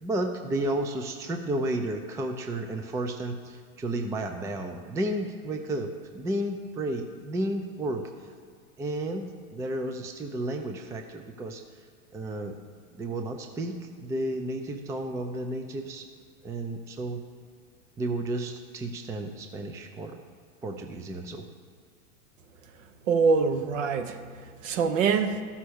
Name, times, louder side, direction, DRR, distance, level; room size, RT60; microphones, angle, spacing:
voice 1, 0.0-8.0 8.8-11.6 12.1-12.6 12.9-16.1 16.4-17.2 18.0-20.2 20.6-21.4, right 1 dB, 10° right, 5 dB, 0.4 m, -32 dB
voice 2, 23.1-24.2 24.6-25.4, right 5 dB, 60° right, 7 dB, 1.3 m, -24 dB
13.0 x 5.7 x 6.3 m, 2.1 s
hypercardioid pair, 120°, 42 cm